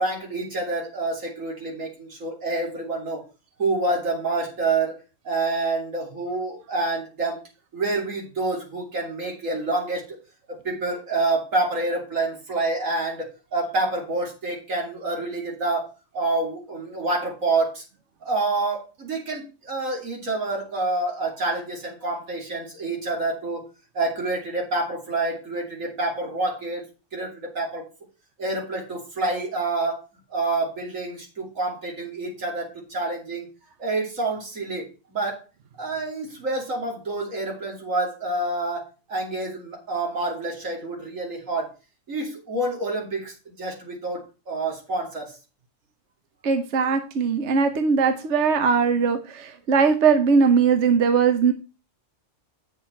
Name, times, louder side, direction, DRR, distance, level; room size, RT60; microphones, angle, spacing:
voice 1, 0.0-3.2 3.6-5.0 5.2-7.4 7.7-10.2 10.6-13.3 13.5-17.8 18.2-23.6 23.9-26.8 27.1-27.8 28.4-30.0 30.3-33.5 33.8-35.4 35.8-41.7 42.1-45.3, right 2 dB, 90° right, 0 dB, 3.2 m, -27 dB
voice 2, 46.4-51.5, right 5 dB, 65° right, 8 dB, 1.1 m, -20 dB
8.6 x 6.7 x 4.4 m, 0.31 s
omnidirectional pair, 1.3 m